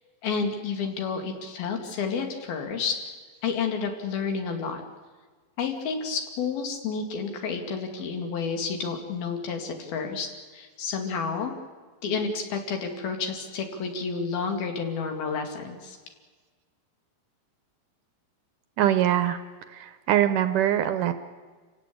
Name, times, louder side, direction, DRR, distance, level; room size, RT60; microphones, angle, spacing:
voice 1, 0.2-3.0 3.4-4.8 5.6-10.3 10.5-11.5 12.0-16.0, left 5 dB, 75° left, 4 dB, 4.2 m, -30 dB
voice 2, 18.8-19.4 19.7-21.1, right 11 dB, 75° right, 10 dB, 2.1 m, -23 dB
28.0 x 16.5 x 8.6 m, 1.4 s
omnidirectional pair, 4.3 m